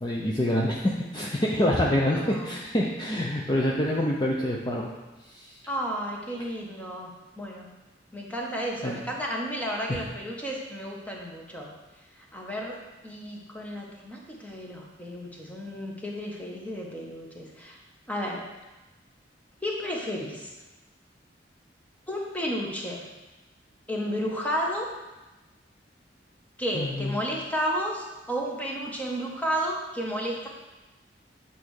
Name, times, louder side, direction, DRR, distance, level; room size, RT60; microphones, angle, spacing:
voice 1, 0.0-4.9 5.3-5.5 8.8-9.0 9.9-10.0 26.7-27.2, left 1 dB, 25° left, -3 dB, 0.7 m, -26 dB
voice 2, 2.2-2.6 5.7-7.7 8.1-11.7 12.3-12.8 13.0-17.8 18.1-18.4 19.6-20.5 22.1-23.0 23.9-24.9 26.6-30.5, equal, 10° left, -2 dB, 1.3 m, -32 dB
8.6 x 4.2 x 6.4 m, 1.1 s
head